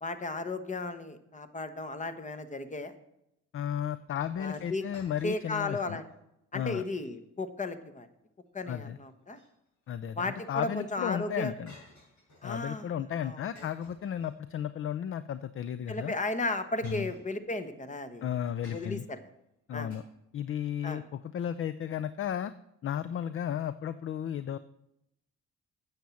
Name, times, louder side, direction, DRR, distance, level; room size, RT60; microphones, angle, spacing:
voice 1, 0.0-2.9 4.4-4.8 5.2-6.0 6.5-8.1 8.5-9.4 10.2-11.5 12.4-13.4 15.9-18.3 18.6-19.2 19.7-19.9 20.8-21.0, left 2 dB, 25° left, 11 dB, 1.1 m, -35 dB
voice 2, 3.5-6.0 6.5-6.8 8.7-9.0 9.9-11.7 12.4-16.1 16.8-17.1 18.2-19.0 19.7-20.0 20.3-22.5 22.8-24.6, left 9 dB, 45° left, 15 dB, 0.5 m, -34 dB
sound 1, 4.5-5.7 6.1-6.2 6.8-7.1 9.1-9.9 11.7-12.6 13.5-14.7 15.8-16.0 16.8-17.7 18.6-19.2 19.9-20.0, left 1 dB, 70° left, 5.3 m, -56 dB
9.1 x 7.4 x 7.0 m, 0.82 s
cardioid pair, 90°, 30 cm